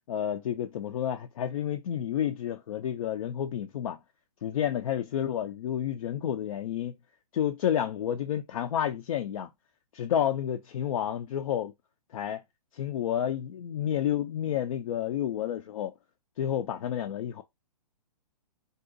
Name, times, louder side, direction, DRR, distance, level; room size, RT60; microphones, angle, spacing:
voice 1, 0.1-4.0 4.4-6.9 7.3-9.5 9.9-11.7 12.1-12.4 12.7-15.9 16.4-17.4, left 10 dB, 60° left, 0.4 m, -30 dB
3.7 x 2.3 x 2.5 m
hypercardioid pair, 140°, 20 cm